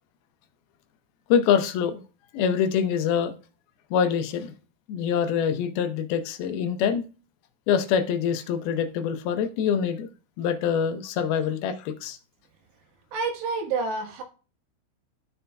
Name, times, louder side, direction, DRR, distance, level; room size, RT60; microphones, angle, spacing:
voice 1, 1.3-2.0 2.3-3.3 3.9-4.5 4.9-7.0 7.7-10.1 10.4-12.2, left 7 dB, 75° left, 8 dB, 2.5 m, -25 dB
voice 2, 13.1-14.2, right 4 dB, 90° right, 3 dB, 3.6 m, -28 dB
13.0 x 5.5 x 2.3 m, 0.34 s
omnidirectional pair, 4.7 m